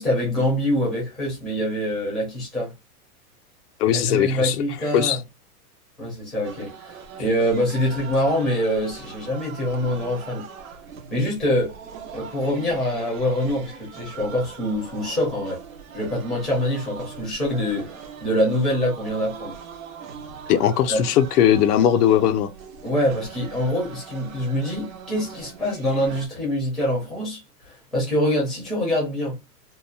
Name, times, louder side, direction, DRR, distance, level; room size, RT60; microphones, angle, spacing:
voice 1, 0.0-2.7 3.9-5.2 6.0-10.4 11.1-11.7 12.1-15.6 15.9-19.6 20.9-21.0 22.8-29.4, equal, ahead, 0.7 m, -25 dB
voice 2, 3.8-4.6 4.9-5.2 20.5-22.5, left 10 dB, 85° left, 0.6 m, -19 dB
sound 1, 6.4-26.3, right 6 dB, 60° right, 0.8 m, -41 dB
2.8 x 2.1 x 2.4 m
supercardioid pair, 170°, 46 cm